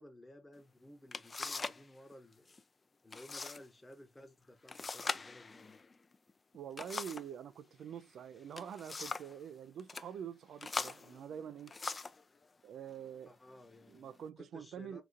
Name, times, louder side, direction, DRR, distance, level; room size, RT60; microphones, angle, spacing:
voice 1, 0.0-2.5 3.0-5.8 13.2-15.0, left 1 dB, 15° left, 0.9 m, -56 dB
sound 1, 0.6-0.7 1.1-1.9 2.1-2.6 3.1-3.6 3.9-4.0 4.7-7.3 8.3-9.4 9.8-10.1 10.6-12.2 13.0-13.2 13.7-14.2, left 4 dB, 35° left, 0.4 m, -42 dB
voice 2, 6.5-11.7 12.6-13.3 13.9-15.0, right 8 dB, 70° right, 0.3 m, -46 dB
3.9 x 2.3 x 2.5 m
supercardioid pair, 55°, 0 cm